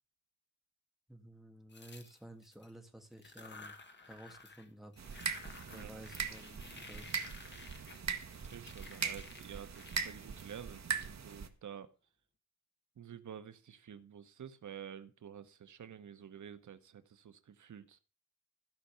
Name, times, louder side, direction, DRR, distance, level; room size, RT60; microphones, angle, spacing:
voice 1, 1.1-3.7 4.0-5.0 5.6-7.1, right 1 dB, ahead, 2.1 m, -53 dB
sound 1, 1.7-2.7 3.1-4.7 4.9-11.3, left 3 dB, 35° left, 1.8 m, -54 dB
sound 2, 5.0-11.5, right 6 dB, 65° right, 1.5 m, -40 dB
voice 2, 5.3-5.9 8.2-11.9 13.0-18.0, right 8 dB, 80° right, 1.0 m, -50 dB
15.0 x 5.6 x 6.8 m
wide cardioid pair, 145°, 30 cm